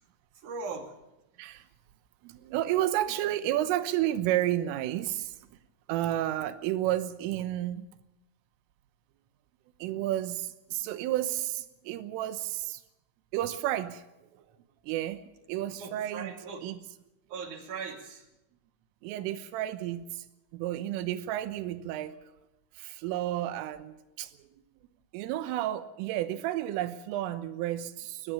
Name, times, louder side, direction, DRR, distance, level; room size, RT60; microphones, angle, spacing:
voice 1, 0.3-0.9 5.9-6.2 15.8-16.7 17.3-18.2, right 4 dB, 45° right, 4 dB, 3.3 m, -40 dB
voice 2, 2.2-5.6 5.9-7.9 9.8-12.8 13.3-14.0 14.3-14.4 14.8-15.2 15.5-16.3 16.6-16.8 19.0-20.3 20.5-22.2 22.8-24.5 25.1-28.3, right 13 dB, 85° right, 11 dB, 3.6 m, -31 dB
22.5 x 18.0 x 7.0 m, 0.94 s
omnidirectional pair, 5.8 m